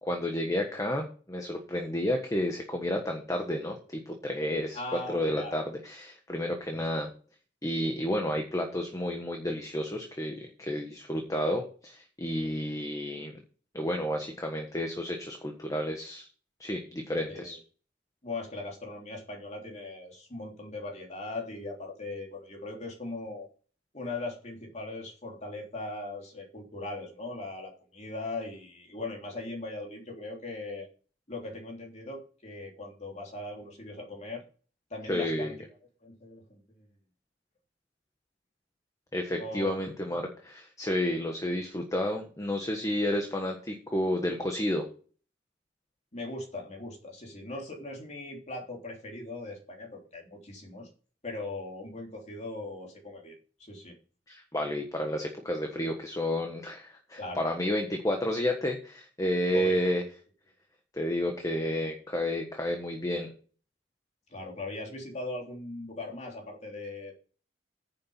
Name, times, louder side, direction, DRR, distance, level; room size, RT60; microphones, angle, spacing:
voice 1, 0.0-3.8 4.1-4.8 5.1-7.1 7.6-13.4 13.7-16.3 16.6-17.6 35.1-35.5 39.1-44.9 54.3-60.0 60.9-63.3, left 1 dB, 20° left, 3 dB, 1.4 m, -31 dB
voice 2, 4.7-5.6 6.7-6.9 17.3-17.6 18.2-23.5 23.9-30.9 31.3-34.4 34.9-35.5 36.0-36.8 39.4-39.8 46.1-50.9 51.2-53.9 57.2-57.5 59.5-59.8 64.3-67.1, left 2 dB, 40° left, 0 dB, 3.4 m, -39 dB
10.0 x 7.1 x 5.6 m, 0.39 s
head